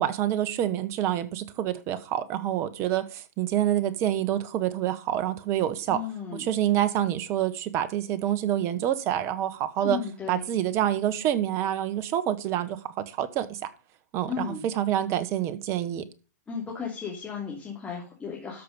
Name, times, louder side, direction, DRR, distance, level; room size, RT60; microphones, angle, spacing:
voice 1, 0.0-6.0 6.3-10.0 10.3-13.6 14.1-16.1, right 11 dB, 30° right, 1.3 m, -27 dB
voice 2, 5.9-6.5 9.8-10.4 14.3-14.6 16.5-18.6, left 7 dB, 10° left, 3.1 m, -34 dB
13.0 x 5.9 x 5.3 m
hypercardioid pair, 130°, 9 cm